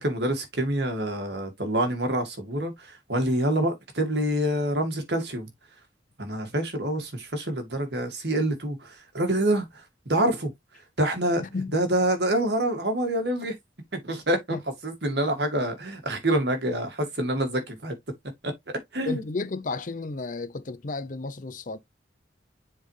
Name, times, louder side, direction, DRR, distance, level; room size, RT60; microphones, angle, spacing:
voice 1, 0.0-5.5 6.2-9.7 10.1-10.5 11.0-11.4 11.7-13.5 13.9-14.6 14.8-18.0 18.4-18.5 18.9-19.2, right 1 dB, 60° right, 2.1 m, -26 dB
voice 2, 11.4-11.8 14.5-14.6 19.0-21.8, left 3 dB, 45° left, 0.6 m, -33 dB
7.4 x 4.2 x 3.2 m
head